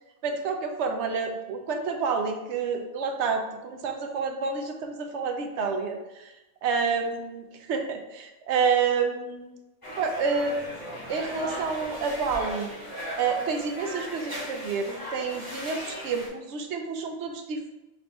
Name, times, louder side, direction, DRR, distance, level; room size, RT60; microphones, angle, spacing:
voice 1, 0.2-6.3 6.6-9.5 10.0-10.6 11.1-12.7 13.2-17.7, right 5 dB, 70° right, 4 dB, 0.9 m, -29 dB
sound 1, 9.8-16.3, equal, 20° left, 1.2 m, -37 dB
5.9 x 2.6 x 3.4 m, 1.0 s
omnidirectional pair, 1.2 m